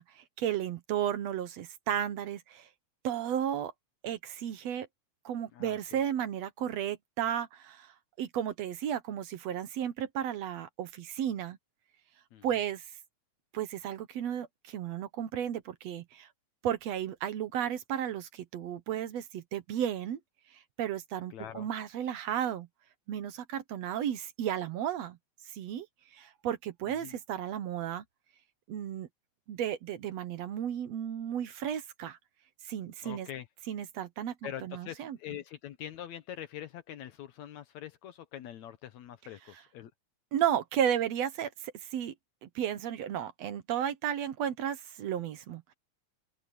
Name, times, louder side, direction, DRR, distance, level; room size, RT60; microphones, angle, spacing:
voice 1, 0.0-2.7 3.0-3.7 4.0-4.9 5.3-11.6 12.4-12.9 13.5-16.3 16.6-20.2 20.5-22.7 23.1-25.2 25.5-25.9 26.1-28.0 28.7-29.1 29.5-32.2 32.6-33.3 33.7-35.2 40.3-42.1 42.4-45.7, right 10 dB, 65° right, 2.0 m, -34 dB
voice 2, 5.5-6.0 12.3-12.5 21.3-21.7 27.0-27.2 33.0-33.5 34.4-39.9, left 11 dB, 70° left, 2.3 m, -44 dB
open air
omnidirectional pair, 3.4 m